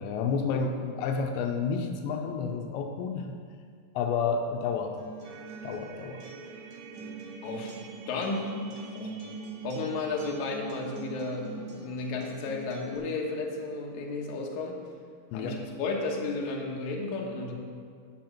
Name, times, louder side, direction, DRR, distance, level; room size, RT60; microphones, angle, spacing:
voice 1, 0.0-3.4 4.0-5.0 5.6-6.2 15.3-15.6, left 5 dB, 90° left, 4 dB, 2.9 m, -30 dB
Acoustic guitar, 5.0-13.0, right 3 dB, 60° right, 1.8 m, -44 dB
sound 1, 5.2-12.5, right 7 dB, 90° right, 3.1 m, -48 dB
voice 2, 7.4-7.8 8.1-8.6 8.9-9.1 9.6-14.8 15.3-17.5, left 3 dB, 65° left, -1 dB, 1.9 m, -33 dB
7.7 x 7.6 x 7.2 m, 2.2 s
omnidirectional pair, 5.2 m